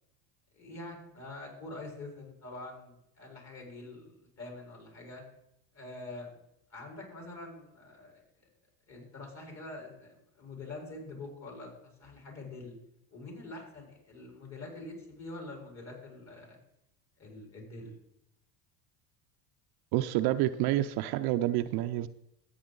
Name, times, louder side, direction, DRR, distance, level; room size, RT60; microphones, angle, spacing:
voice 1, 0.5-5.2 5.7-6.4 6.7-8.2 8.9-12.8 13.1-16.6 17.2-17.9, left 2 dB, 35° left, 4.8 m, -45 dB
voice 2, 19.9-22.1, right 14 dB, 55° right, 0.6 m, -28 dB
13.5 x 8.6 x 3.9 m
supercardioid pair, 90°, 45 cm